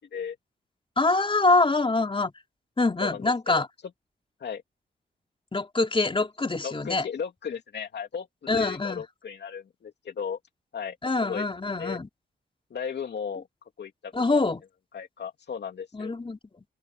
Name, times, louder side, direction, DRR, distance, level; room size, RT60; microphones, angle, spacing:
voice 1, 1.0-2.3 2.8-3.7 5.5-7.0 8.5-9.0 11.0-12.1 14.1-14.6 15.9-16.6, left 3 dB, 30° left, 4.1 m, -25 dB
voice 2, 3.0-3.6 4.4-4.6 6.6-8.3 8.5-10.4 10.7-11.5 11.8-12.0 12.7-13.5 13.8-14.4 14.9-16.2, left 7 dB, 75° left, 2.7 m, -35 dB
open air
cardioid pair, 65°, 18 cm